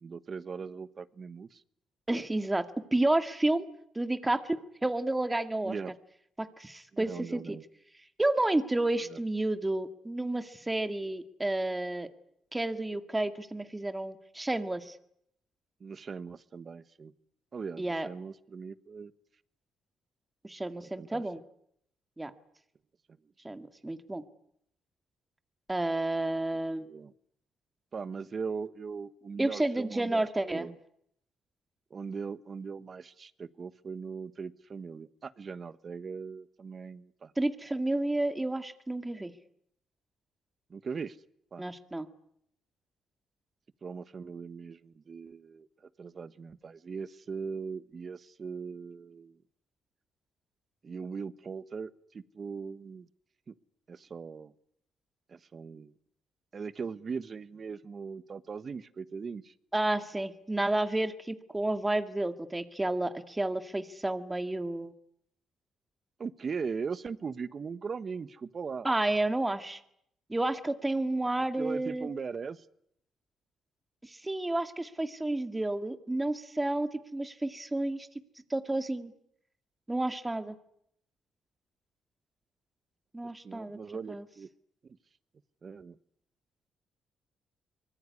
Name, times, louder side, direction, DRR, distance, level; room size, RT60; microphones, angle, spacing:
voice 1, 0.0-1.6 5.6-5.9 6.9-7.6 9.1-9.2 15.8-17.1 17.5-19.1 21.0-21.2 26.8-27.1 27.9-30.7 31.9-37.3 40.7-41.2 41.5-41.6 43.8-45.7 46.0-49.4 50.8-53.1 53.5-53.6 53.9-54.5 55.3-55.9 56.5-59.5 66.2-68.9 71.6-72.6 83.4-84.5 85.6-86.0, right 5 dB, 40° right, 15 dB, 1.2 m, -39 dB
voice 2, 2.1-2.7 2.9-3.7 4.0-5.8 6.4-7.6 8.2-12.1 12.5-15.0 17.8-18.1 20.4-21.4 22.2-22.3 23.4-24.2 25.7-26.9 29.4-30.7 37.4-39.3 41.6-42.1 59.7-64.9 68.8-69.8 70.3-72.1 74.0-78.1 78.5-79.1 79.9-80.6 83.1-83.8 84.1-84.2, right 2 dB, 15° right, 9 dB, 2.0 m, -31 dB
24.5 x 21.0 x 9.8 m, 0.71 s
cardioid pair, 90°, 0 cm